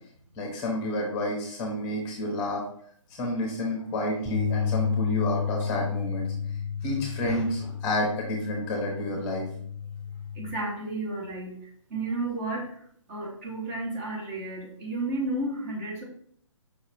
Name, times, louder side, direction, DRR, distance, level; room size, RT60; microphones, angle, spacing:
voice 1, 0.4-2.6 3.2-6.3 6.8-9.5, left 1 dB, 20° left, 0 dB, 0.7 m, -30 dB
sound 1, 4.3-10.5, left 7 dB, 5° right, 1.0 m, -31 dB
voice 2, 10.3-12.8 13.1-16.0, right 2 dB, 30° right, -1 dB, 0.9 m, -32 dB
5.0 x 2.3 x 3.3 m, 0.62 s
figure-of-eight pair, 140°, 17 cm